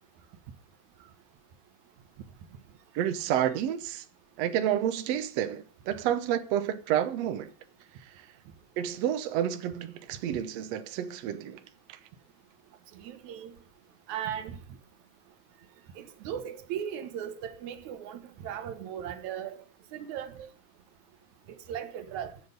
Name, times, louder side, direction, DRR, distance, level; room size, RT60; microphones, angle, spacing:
voice 1, 2.9-4.0 4.4-7.5 8.8-11.6 11.9-12.0, right 10 dB, 85° right, 1.4 m, -29 dB
voice 2, 13.0-13.5 14.1-14.6 16.0-19.6 19.9-20.5 21.5-22.3, right 9 dB, 70° right, 2.0 m, -37 dB
12.0 x 7.9 x 5.3 m
omnidirectional pair, 4.2 m